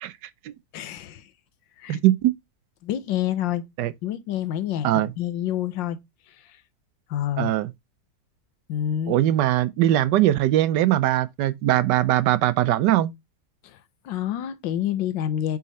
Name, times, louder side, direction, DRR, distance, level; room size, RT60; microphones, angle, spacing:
voice 1, 0.7-1.3 1.8-2.0 2.8-3.6 4.0-6.0 6.4-6.6 7.1-7.5 8.7-9.2 13.6-13.8 14.0-15.6, left 11 dB, 85° left, 1.5 m, -28 dB
voice 2, 1.9-2.3 3.8-3.9 4.8-5.1 7.4-7.7 9.1-13.1, right 14 dB, 75° right, 1.1 m, -21 dB
8.1 x 3.7 x 4.0 m
omnidirectional pair, 2.0 m